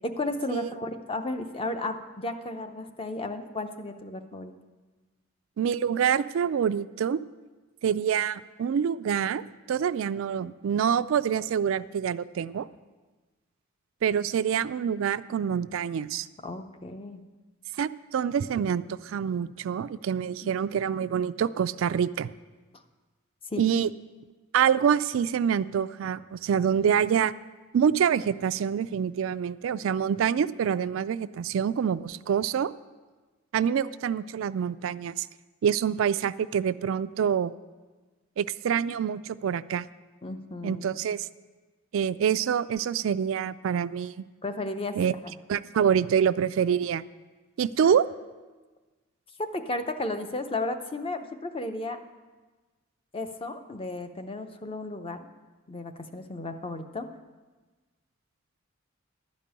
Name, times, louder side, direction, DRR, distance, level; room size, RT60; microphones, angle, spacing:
voice 1, 0.0-4.5 16.4-17.3 20.4-20.5 23.5-23.6 40.2-40.8 44.4-45.0 45.2-45.3 47.8-47.9 49.5-52.0 53.1-55.3 55.7-57.1, left 2 dB, 25° left, 7 dB, 0.7 m, -34 dB
voice 2, 5.6-7.2 7.8-9.4 9.7-12.7 14.0-16.3 17.8-22.3 23.6-23.9 24.5-27.3 27.7-32.7 33.5-35.3 35.6-37.5 38.4-39.9 40.6-41.3 41.9-44.2 45.0-45.1 45.5-47.0 47.6-48.1, right 8 dB, 75° right, 14 dB, 0.3 m, -26 dB
12.0 x 5.3 x 8.7 m, 1.3 s
head